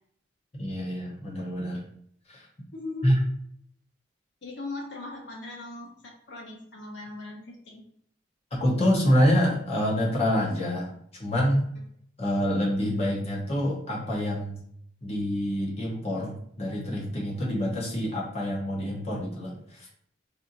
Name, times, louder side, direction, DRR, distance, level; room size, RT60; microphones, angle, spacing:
voice 1, 0.6-1.8 2.3-2.5 3.0-3.2 8.6-10.9 11.2-11.6 12.2-14.6 15.0-19.9, equal, 35° left, -4 dB, 0.8 m, -26 dB
voice 2, 2.7-3.1 4.4-7.8, left 2 dB, 65° left, 0 dB, 0.8 m, -39 dB
4.3 x 2.6 x 2.5 m, 0.67 s
head